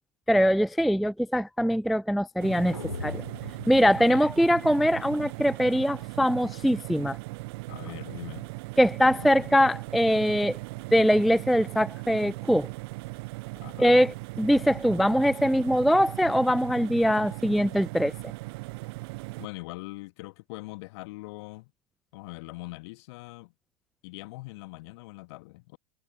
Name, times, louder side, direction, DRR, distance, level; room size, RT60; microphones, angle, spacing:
voice 1, 0.3-3.2 3.7-7.2 8.8-10.6 10.9-12.7 13.8-18.1, equal, ahead, 0.3 m, -22 dB
sound 1, 2.4-19.5, right 25 dB, 45° right, 0.6 m, -38 dB
sound 2, 2.7-5.0, left 4 dB, 80° left, 3.3 m, -41 dB
voice 2, 3.8-4.3 7.7-8.5 9.2-9.6 13.6-14.1 19.4-21.7 22.1-23.5 24.0-25.8, left 23 dB, 50° left, 2.0 m, -42 dB
figure-of-eight pair, 85°, 18 cm